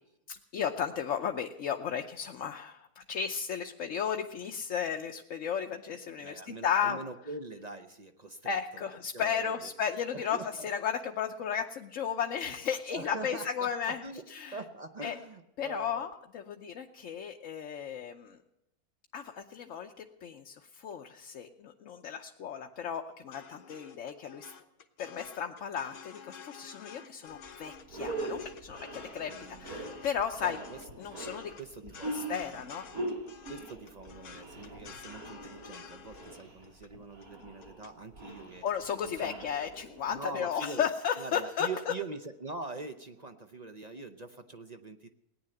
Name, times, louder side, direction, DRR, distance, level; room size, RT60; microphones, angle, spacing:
voice 1, 0.3-7.0 8.5-14.0 14.3-14.6 15.0-15.1 15.6-18.4 19.1-24.5 25.0-29.3 29.6-30.6 31.0-31.5 32.1-32.9 38.6-41.9, left 7 dB, 60° left, 4 dB, 1.1 m, -34 dB
voice 2, 6.2-9.7 10.1-10.7 12.9-16.1 29.2-29.8 30.4-31.2 31.6-32.6 33.5-38.6 39.0-39.5 40.1-40.9 41.2-45.1, right 3 dB, 40° right, 7 dB, 0.6 m, -43 dB
sound 1, 22.8-37.9 38.3-38.7, left 7 dB, 75° left, 1.7 m, -50 dB
sound 2, 27.3-27.5 27.8-40.2, right 2 dB, 65° right, 4.1 m, -42 dB
18.0 x 10.0 x 7.8 m, 0.88 s
omnidirectional pair, 1.6 m